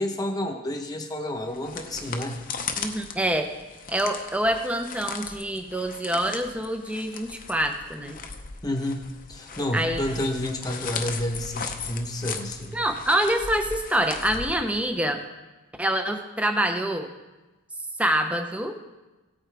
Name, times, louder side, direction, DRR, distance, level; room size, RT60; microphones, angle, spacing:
voice 1, 0.0-2.4 8.6-9.0 9.3-12.8, left 1 dB, 15° left, 4 dB, 1.1 m, -30 dB
sound 1, 1.4-15.1, left 5 dB, 40° left, 0.7 m, -38 dB
voice 2, 2.8-3.5 3.9-8.2 9.7-10.0 12.7-15.2 15.8-17.1 18.0-18.8, right 1 dB, 5° right, 5 dB, 0.7 m, -26 dB
17.0 x 8.7 x 3.4 m, 1.1 s
head